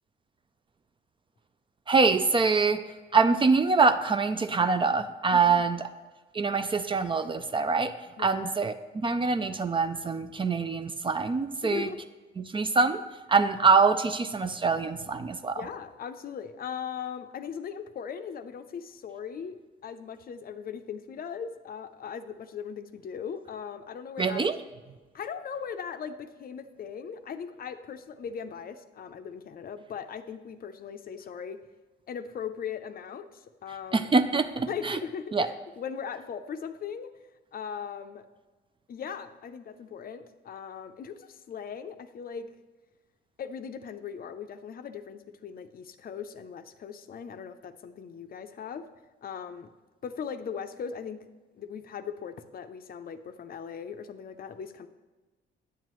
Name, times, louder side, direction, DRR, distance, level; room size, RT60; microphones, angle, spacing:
voice 1, 1.9-2.8 3.1-5.9 6.3-7.9 8.2-11.9 12.4-13.0 13.3-15.7 24.2-24.6 33.9-35.0 35.3-35.5, right 4 dB, 25° right, 10 dB, 0.4 m, -24 dB
voice 2, 5.3-5.6 8.2-8.4 11.6-12.0 15.6-19.6 19.8-24.4 25.1-31.6 32.1-34.1 34.7-37.1 37.5-38.2 38.9-42.5 43.4-48.9 49.2-49.7 50.0-51.3 51.6-54.9, left 7 dB, 50° left, 9 dB, 0.5 m, -39 dB
9.4 x 7.4 x 3.1 m, 1.2 s
cardioid pair, 90°, 20 cm